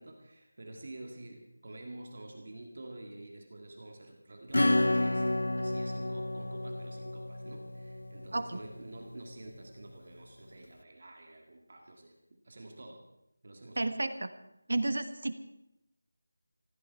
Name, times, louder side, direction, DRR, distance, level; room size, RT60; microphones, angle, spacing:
voice 1, 0.0-5.2 5.6-12.1 12.4-13.1 13.4-13.9, right 2 dB, 30° right, 2 dB, 1.9 m, -48 dB
Acoustic guitar / Strum, 4.5-8.8, left 1 dB, 85° left, 0.5 m, -30 dB
voice 2, 13.8-14.3 14.7-15.3, right 2 dB, 50° right, 10 dB, 1.4 m, -31 dB
19.5 x 15.5 x 4.6 m, 0.85 s
figure-of-eight pair, 180°, 0 cm